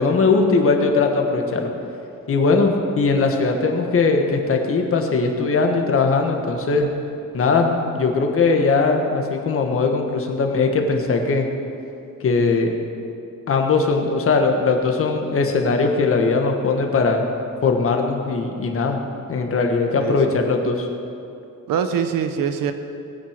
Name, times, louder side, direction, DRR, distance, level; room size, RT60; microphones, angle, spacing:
voice 1, 0.0-1.7 2.3-6.9 7.3-11.5 12.2-12.7 13.5-17.2 17.6-19.0 19.3-20.9, left 4 dB, 40° left, 3 dB, 1.5 m, -20 dB
voice 2, 20.0-20.4 21.7-22.7, right 7 dB, 75° right, 8 dB, 1.1 m, -23 dB
19.0 x 9.3 x 5.1 m, 2.6 s
cardioid pair, 155°, 34 cm